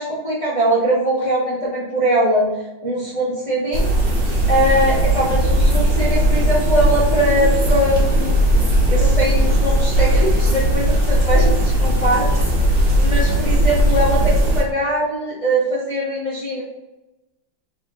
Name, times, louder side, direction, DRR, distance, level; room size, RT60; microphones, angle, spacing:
voice 1, 0.0-2.5 2.8-3.9 4.5-8.4 8.9-12.5 12.9-16.6, right 1 dB, 30° left, -7 dB, 0.6 m, -21 dB
sound 1, 3.7-14.6, right 1 dB, 50° right, 1.2 m, -17 dB
4.2 x 3.5 x 3.0 m, 1.0 s
omnidirectional pair, 2.1 m